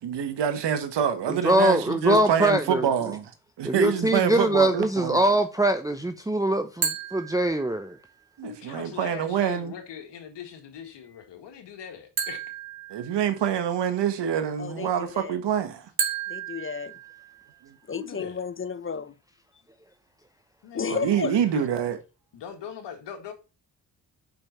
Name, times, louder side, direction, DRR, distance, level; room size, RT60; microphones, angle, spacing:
voice 1, 0.0-3.3 3.6-5.2 8.4-9.7 12.9-15.9 20.9-22.0, right 8 dB, 75° right, 1.5 m, -26 dB
voice 2, 1.3-2.9 3.6-8.0, right 1 dB, 10° right, 0.8 m, -23 dB
sound 1, 6.8-8.1 12.2-13.7 16.0-17.7, right 7 dB, 60° right, 1.9 m, -33 dB
voice 3, 8.4-12.4 17.9-18.4 20.6-21.6 22.3-23.3, left 7 dB, 80° left, 1.8 m, -40 dB
voice 4, 14.6-15.4 16.3-16.9 17.9-19.2 20.7-21.3, left 6 dB, 30° left, 0.7 m, -32 dB
5.6 x 5.3 x 6.8 m
supercardioid pair, 50°, 42 cm